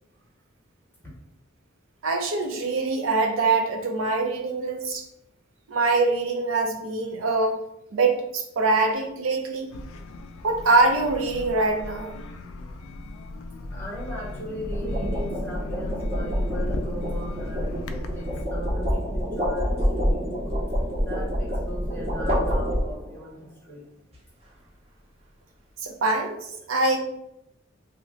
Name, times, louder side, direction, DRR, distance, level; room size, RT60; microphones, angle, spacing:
voice 1, 2.0-5.0 5.7-7.6 7.9-9.7 10.4-12.2 25.8-27.0, right 3 dB, 80° right, 2 dB, 0.5 m, -24 dB
sound 1, 8.9-9.2 14.4-23.3, equal, 30° right, 0.6 m, -28 dB
sound 2, 9.7-18.5, left 1 dB, 85° left, 0.4 m, -35 dB
voice 2, 13.7-20.5 21.0-23.8, equal, 10° left, -5 dB, 0.8 m, -38 dB
2.7 x 2.1 x 3.8 m, 0.80 s
head